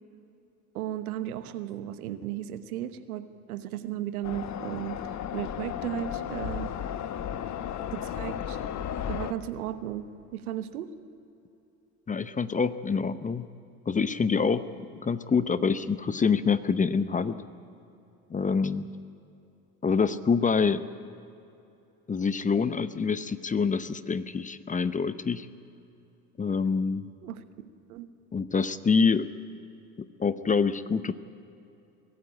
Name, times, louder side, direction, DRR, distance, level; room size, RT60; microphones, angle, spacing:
voice 1, 0.7-6.7 7.9-8.6 9.1-10.9 27.2-27.4 27.9-28.1, right 12 dB, 80° right, 11 dB, 1.2 m, -35 dB
sound 1, 4.2-9.3, left 9 dB, 40° left, 1.1 m, -34 dB
voice 2, 12.1-13.5 13.9-14.7 14.9-17.4 18.3-18.9 19.8-20.8 22.1-25.5 26.4-27.1 28.3-29.3 30.2-31.2, left 5 dB, 20° left, 14 dB, 0.7 m, -26 dB
23.0 x 15.0 x 8.8 m, 2.8 s
hypercardioid pair, 80°, 44 cm